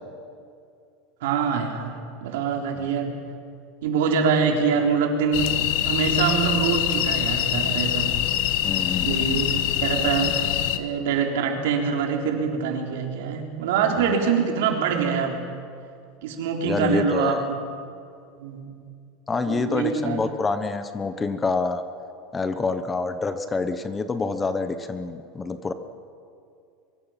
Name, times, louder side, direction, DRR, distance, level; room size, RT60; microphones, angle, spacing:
voice 1, 1.2-3.2 3.8-8.2 9.0-15.4 16.2-17.6 18.4-18.8 19.5-20.2, right 6 dB, 85° right, 2 dB, 3.5 m, -25 dB
sound 1, 5.3-10.8, left 12 dB, 55° left, 1.1 m, -24 dB
voice 2, 8.6-9.5 14.0-14.1 16.7-17.4 19.3-21.8 22.3-25.7, left 4 dB, 10° left, 10 dB, 0.8 m, -27 dB
23.5 x 23.0 x 5.8 m, 2.4 s
supercardioid pair, 175°, 0 cm